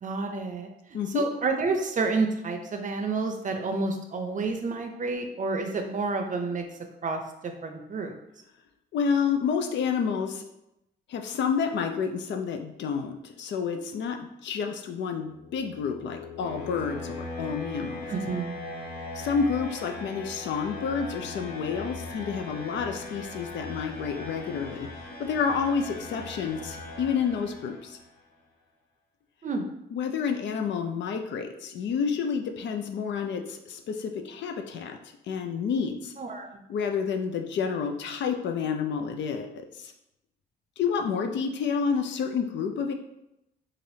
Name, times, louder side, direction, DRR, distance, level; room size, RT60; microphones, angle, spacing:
voice 1, 0.0-6.7 7.0-8.2 18.1-18.5 29.4-29.7 36.2-36.6, right 3 dB, 45° right, 5 dB, 0.5 m, -29 dB
voice 2, 8.9-10.4 11.1-18.1 19.1-24.9 25.2-28.0 29.9-35.0 35.3-36.1 36.7-39.9 40.8-42.9, left 6 dB, 75° left, 5 dB, 0.4 m, -29 dB
sound 1, 15.2-28.0, left 2 dB, 55° left, 0.9 m, -40 dB
3.3 x 2.5 x 2.7 m, 0.85 s
cardioid pair, 75°, 19 cm